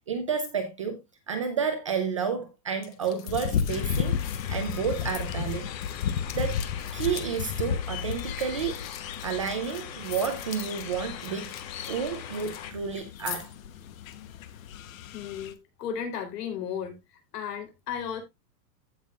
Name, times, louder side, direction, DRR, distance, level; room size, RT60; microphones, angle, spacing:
voice 1, 0.1-1.0 1.3-4.1 4.5-5.7 6.3-6.6 6.9-8.8 9.2-11.5 11.9-13.5, right 6 dB, 20° right, 0.4 m, -30 dB
sound 1, 2.8-12.6 12.9-13.6 14.0-14.1, left 10 dB, 25° left, 0.6 m, -44 dB
sound 2, 3.3-15.5, left 7 dB, 55° left, 1.0 m, -34 dB
sound 3, 3.7-12.7, left 9 dB, 90° left, 1.7 m, -43 dB
voice 2, 15.1-17.0 17.3-18.2, left 8 dB, 70° left, 3.9 m, -34 dB
15.0 x 5.6 x 2.4 m
supercardioid pair, 170°, 50 cm